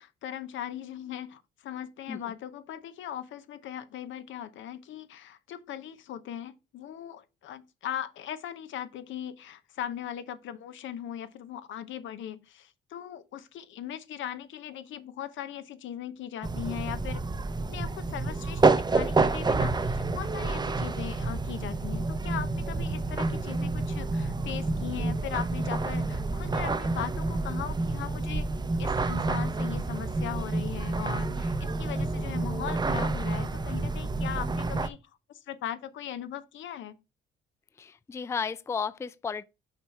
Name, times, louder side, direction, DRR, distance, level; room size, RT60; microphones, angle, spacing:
voice 1, 0.0-17.2 17.7-28.5 28.8-35.0 35.3-37.0, left 10 dB, 75° left, 0.8 m, -39 dB
sound 1, 16.4-34.9, right 3 dB, 20° right, 0.6 m, -29 dB
voice 2, 37.8-39.4, left 6 dB, 15° left, 0.3 m, -33 dB
5.9 x 4.2 x 4.6 m
cardioid pair, 90°, 20 cm